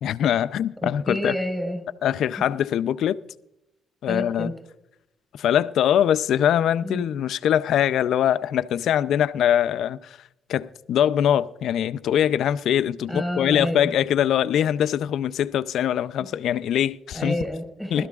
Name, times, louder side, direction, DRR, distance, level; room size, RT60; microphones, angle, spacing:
voice 1, 0.0-1.3 2.0-3.2 4.0-4.5 5.4-10.2 10.5-17.3 17.9-18.1, left 10 dB, 75° left, 0.4 m, -22 dB
voice 2, 0.8-1.8 4.1-4.5 6.8-7.0 13.1-13.9 17.1-18.1, equal, 5° right, 4.4 m, -29 dB
20.5 x 13.0 x 2.4 m
cardioid pair, 90°, 0 cm